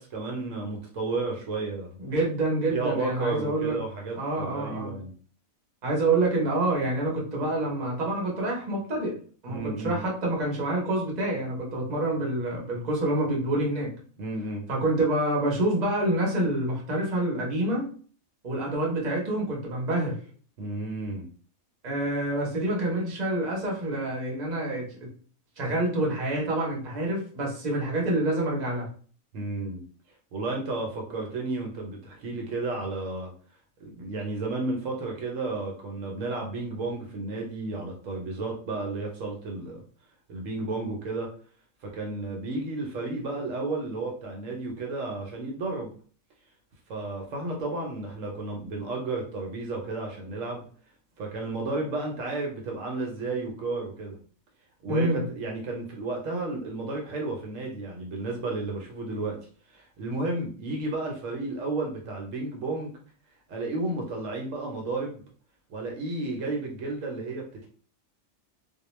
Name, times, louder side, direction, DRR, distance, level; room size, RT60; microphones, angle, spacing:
voice 1, 0.0-2.0 2.7-5.1 9.5-10.0 14.2-14.6 20.6-21.3 29.3-29.8 30.3-33.3 33.8-39.8 40.3-41.3 41.8-45.9 46.9-50.6 51.2-54.2 54.8-59.4 59.7-62.9 63.5-65.2 65.7-67.7, right 3 dB, 70° right, 0 dB, 1.0 m, -32 dB
voice 2, 2.0-3.8 4.2-4.9 5.8-9.1 9.4-13.9 14.7-17.9 18.4-20.2 21.8-25.1 25.6-28.9 54.9-55.3, right 1 dB, 35° right, -2 dB, 0.8 m, -27 dB
2.3 x 2.2 x 3.0 m, 0.43 s
omnidirectional pair, 1.4 m